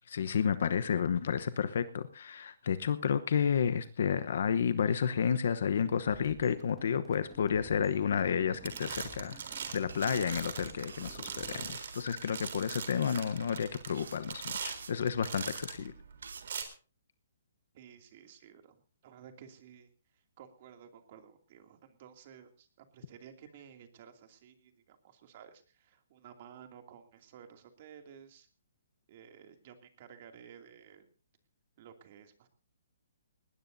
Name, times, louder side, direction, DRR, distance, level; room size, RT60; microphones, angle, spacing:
voice 1, 0.0-9.4 9.7-15.9, left 7 dB, 60° left, 12 dB, 1.0 m, -31 dB
sound 1, 6.1-11.7, right 3 dB, 5° right, 2.4 m, -52 dB
sound 2, 8.1-8.4 8.6-15.9 16.4-16.6, right 7 dB, 60° right, 3.7 m, -41 dB
sound 3, 9.9-16.5, right 5 dB, 90° right, 1.5 m, -50 dB
voice 2, 17.7-28.5 29.1-31.1 31.8-32.5, right 8 dB, 35° right, 5 dB, 2.6 m, -54 dB
20.0 x 19.0 x 2.7 m, 0.37 s
hypercardioid pair, 165°, 0 cm